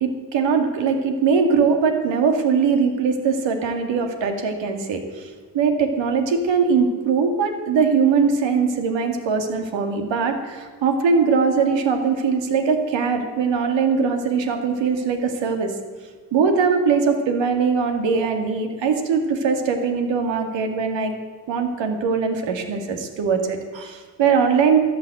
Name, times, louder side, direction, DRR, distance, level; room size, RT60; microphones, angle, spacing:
voice 1, 0.0-15.7 16.3-21.1 21.5-24.8, right 5 dB, 75° right, 5 dB, 2.3 m, -21 dB
13.5 x 9.6 x 7.9 m, 1.4 s
cardioid pair, 80°, 45 cm